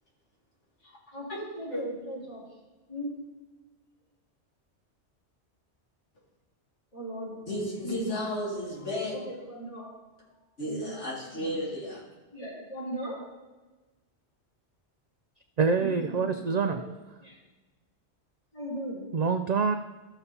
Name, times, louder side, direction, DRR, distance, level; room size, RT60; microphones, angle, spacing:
voice 1, 1.1-2.5 2.9-3.2 6.9-7.4 7.8-8.2 9.1-10.0 10.6-11.0 11.3-11.6 12.3-13.3 15.8-16.3 16.7-16.8 17.2-17.4 18.5-19.1, right 1 dB, 30° left, -8 dB, 3.3 m, -38 dB
voice 2, 7.5-9.2 10.6-12.0, left 1 dB, 80° left, -5 dB, 2.5 m, -33 dB
voice 3, 15.6-16.8 19.1-19.7, right 5 dB, 60° right, 6 dB, 0.4 m, -25 dB
14.5 x 6.7 x 2.8 m, 1.2 s
omnidirectional pair, 1.2 m